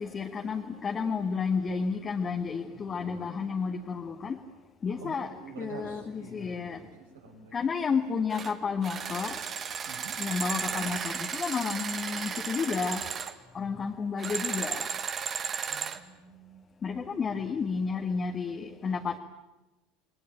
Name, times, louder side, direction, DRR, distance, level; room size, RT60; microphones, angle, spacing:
voice 1, 0.0-4.4 4.8-6.8 7.5-9.4 10.2-13.1 13.5-14.9 16.8-19.2, left 5 dB, 30° left, 2.0 m, -31 dB
voice 2, 5.0-7.7 9.9-10.2 15.7-16.7, right 5 dB, 75° right, 5.6 m, -47 dB
sound 1, 8.3-8.5 8.8-13.3 14.2-16.0, right 7 dB, 35° right, 2.0 m, -34 dB
28.5 x 22.5 x 9.2 m
figure-of-eight pair, 75°, 0 cm